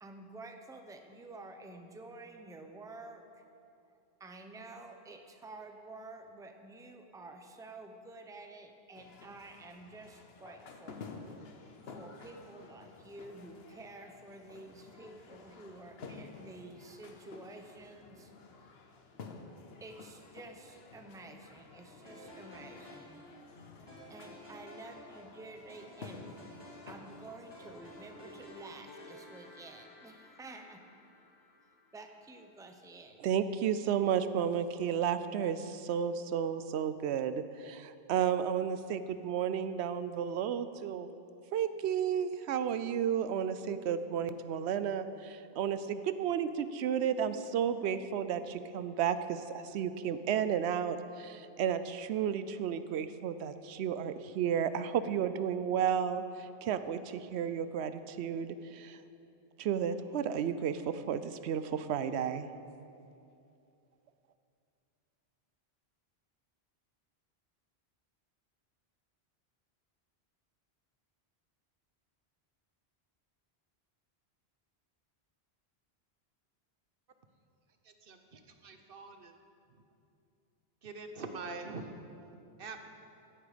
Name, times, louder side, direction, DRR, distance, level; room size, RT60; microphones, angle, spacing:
voice 1, 0.0-3.4 4.2-11.1 11.9-18.3 19.8-23.3 24.1-26.3 26.9-30.9 31.9-33.2, right 2 dB, 5° right, 5 dB, 0.7 m, -50 dB
sound 1, 8.9-28.5, left 4 dB, 70° left, 1.2 m, -52 dB
sound 2, 22.1-32.3, equal, 25° left, 2.7 m, -53 dB
voice 2, 33.2-41.1 41.5-59.0 59.6-62.5, right 8 dB, 90° right, 12 dB, 0.9 m, -32 dB
voice 3, 78.6-79.3 80.8-81.9 82.6-82.9, right 4 dB, 60° right, 6 dB, 1.1 m, -43 dB
16.0 x 8.9 x 5.0 m, 2.6 s
omnidirectional pair, 1.1 m